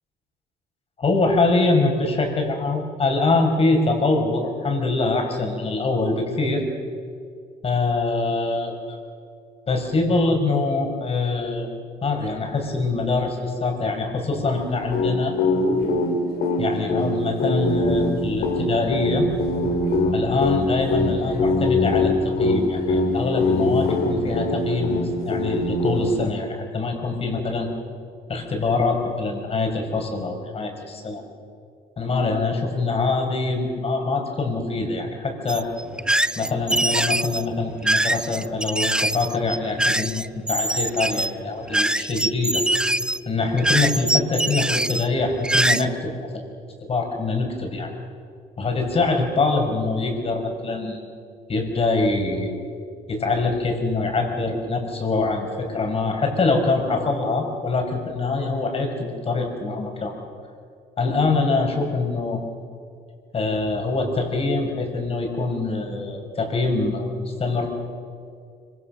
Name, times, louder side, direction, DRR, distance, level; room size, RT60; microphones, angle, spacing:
voice 1, 1.0-6.6 7.6-9.0 9.7-11.7 12.0-15.3 16.6-19.3 20.1-22.1 22.4-27.7 28.3-31.2 32.0-35.7 36.3-42.6 43.3-46.4 46.9-47.9 48.6-51.0 51.5-52.5 53.1-60.2 61.0-62.4 63.3-67.7, left 3 dB, 35° left, 3 dB, 5.6 m, -24 dB
sound 1, 14.9-26.3, left 2 dB, 65° left, 4.2 m, -23 dB
sound 2, 35.5-45.8, right 1 dB, 5° right, 0.5 m, -23 dB
25.5 x 25.0 x 6.6 m, 2.3 s
cardioid pair, 110°, 17 cm